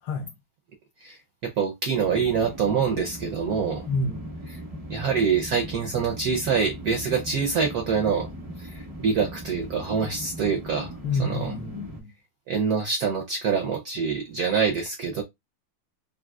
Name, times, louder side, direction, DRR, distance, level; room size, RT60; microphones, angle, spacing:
voice 1, 1.0-3.8 4.5-4.6 4.9-8.3 8.6-10.9 11.2-11.5 12.5-15.2, right 6 dB, 80° right, 0.8 m, -25 dB
sound 1, 1.9-12.0, equal, 35° right, 0.5 m, -39 dB
voice 2, 3.9-4.3 11.0-12.1, left 3 dB, 70° left, 1.2 m, -28 dB
3.6 x 2.6 x 2.2 m
omnidirectional pair, 2.3 m